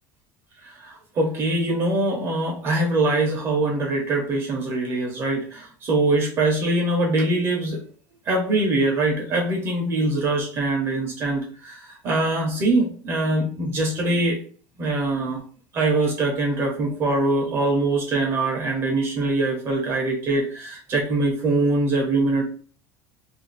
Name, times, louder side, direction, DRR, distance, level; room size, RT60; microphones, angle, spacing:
voice 1, 0.6-7.8 8.3-14.4 14.8-15.4 15.7-22.4, right 2 dB, 30° right, 0 dB, 0.8 m, -23 dB
2.5 x 2.5 x 3.9 m, 0.42 s
cardioid pair, 175°, 8 cm